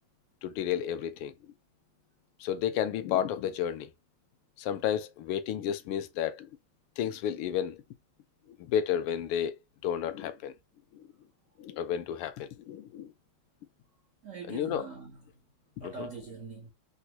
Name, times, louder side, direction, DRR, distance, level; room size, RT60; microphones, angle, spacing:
voice 1, 0.4-1.3 2.4-3.9 4.6-6.5 7.0-7.8 8.6-9.6 9.8-10.5 10.9-11.1 11.6-13.1 14.5-14.8 15.8-16.1, left 10 dB, 80° left, 1.5 m, -32 dB
voice 2, 14.2-15.3 15.8-16.7, right 4 dB, 85° right, 0.6 m, -43 dB
4.0 x 2.2 x 2.8 m
omnidirectional pair, 2.4 m